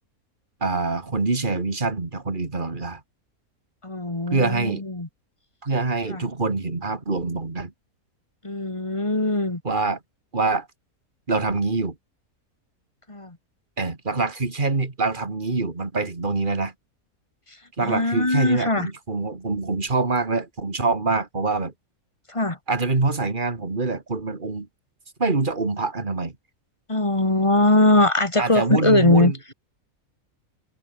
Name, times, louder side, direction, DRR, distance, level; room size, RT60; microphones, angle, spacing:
voice 1, 0.6-3.0 4.3-4.8 5.6-7.7 9.6-10.0 10.3-10.7 11.3-11.9 13.8-16.7 17.8-21.7 22.7-24.7 25.2-26.3 28.4-29.5, right 3 dB, 35° right, 2.7 m, -25 dB
voice 2, 3.8-5.1 6.1-6.2 8.4-9.6 13.1-13.4 17.8-18.9 22.3-22.6 26.9-29.3, left 2 dB, 20° left, 2.3 m, -21 dB
open air
omnidirectional pair, 1.5 m